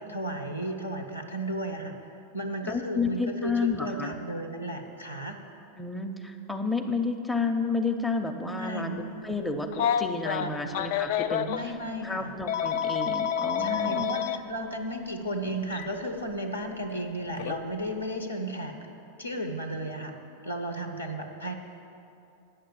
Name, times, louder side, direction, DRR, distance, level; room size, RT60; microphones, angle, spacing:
voice 1, 0.0-1.9 2.3-5.4 8.6-9.0 10.4-10.5 11.5-12.3 13.6-18.8 19.2-20.1 20.4-21.5, right 1 dB, 80° left, 5 dB, 0.9 m, -34 dB
voice 2, 2.6-4.2 5.8-11.5 12.0-14.1, left 4 dB, 5° left, 3 dB, 0.7 m, -31 dB
Telephone, 9.7-11.6 12.5-14.4 15.7-15.9 17.4-17.6, left 9 dB, 50° left, 0.3 m, -28 dB
8.9 x 6.6 x 8.6 m, 2.8 s
figure-of-eight pair, 90°, 0 cm